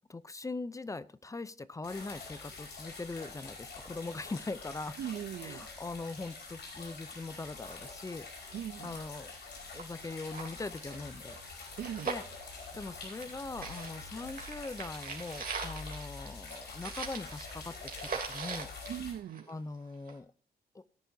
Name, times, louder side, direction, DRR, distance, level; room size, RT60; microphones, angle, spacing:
voice 1, 0.1-5.0 5.4-8.5 8.8-9.3 9.7-11.4 12.0-12.2 12.7-18.7 19.5-20.3 20.7-20.8, left 3 dB, 20° left, 16 dB, 0.6 m, -41 dB
sound 1, 1.8-19.1, left 4 dB, 85° left, 5.1 m, -46 dB
voice 2, 5.0-5.6 8.5-9.0 11.8-12.1 18.9-19.5, right 10 dB, 85° right, 17 dB, 0.6 m, -39 dB
sound 2, 9.4-9.5 9.8-9.9 10.2-13.3 13.6-19.7 20.1-20.2, right 5 dB, 60° right, 3.2 m, -41 dB
18.5 x 10.0 x 2.8 m, 0.41 s
wide cardioid pair, 115°, 17 cm